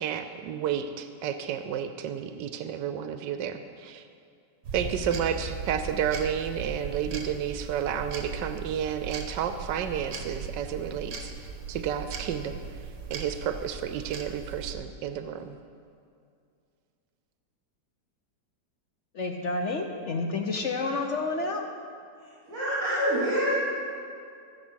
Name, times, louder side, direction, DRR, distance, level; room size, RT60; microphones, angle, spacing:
voice 1, 0.0-4.0 4.7-11.3 11.7-12.6 13.1-15.6, right 8 dB, 85° right, 9 dB, 1.3 m, -31 dB
sound 1, 4.6-14.7, right 5 dB, 70° right, 1.6 m, -38 dB
voice 2, 19.1-21.6, left 3 dB, 55° left, 3 dB, 0.9 m, -29 dB
voice 3, 22.2-23.5, equal, 50° right, -10 dB, 3.7 m, -27 dB
14.0 x 7.3 x 6.3 m, 2.4 s
omnidirectional pair, 1.9 m